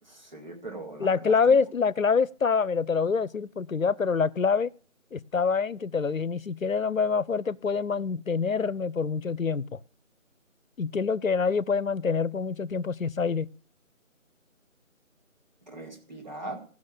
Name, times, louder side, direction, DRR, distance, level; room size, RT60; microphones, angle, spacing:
voice 1, 0.0-1.6 15.7-16.6, right 2 dB, 35° right, 2.2 m, -40 dB
voice 2, 1.0-4.7 5.1-9.8 10.8-13.5, left 5 dB, 75° left, 0.8 m, -26 dB
16.0 x 6.3 x 7.4 m
figure-of-eight pair, 180°, 41 cm